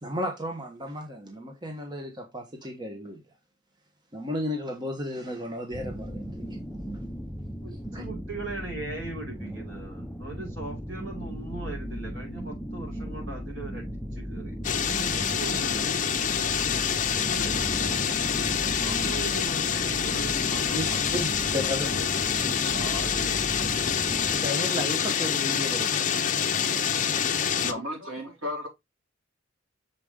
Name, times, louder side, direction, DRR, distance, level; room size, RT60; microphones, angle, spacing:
voice 1, 0.0-3.2 4.1-6.6 7.9-8.0 20.7-21.9 22.3-22.5 24.3-26.4, left 1 dB, 20° right, 1.0 m, -34 dB
sound 1, 5.7-24.5, equal, ahead, 0.5 m, -36 dB
voice 2, 7.6-16.3 17.2-18.1 18.8-22.0 22.7-23.5, right 3 dB, 65° right, 5.0 m, -40 dB
sound 2, 14.6-27.7, left 7 dB, 40° left, 0.7 m, -27 dB
voice 3, 27.6-28.7, left 1 dB, 85° right, 4.2 m, -33 dB
6.8 x 5.0 x 3.6 m
head